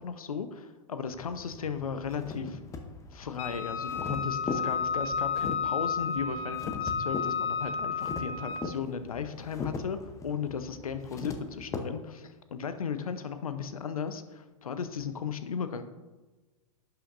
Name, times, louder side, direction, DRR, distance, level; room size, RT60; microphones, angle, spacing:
voice 1, 0.0-2.6 3.1-15.8, left 6 dB, 85° left, 10 dB, 0.7 m, -36 dB
sound 1, 1.1-11.8, left 4 dB, 15° left, 0.8 m, -40 dB
Wind instrument woodwind instrument, 3.4-8.7, left 6 dB, 35° left, 1.1 m, -32 dB
11.0 x 5.7 x 2.6 m, 1.2 s
hypercardioid pair, 115°, 18 cm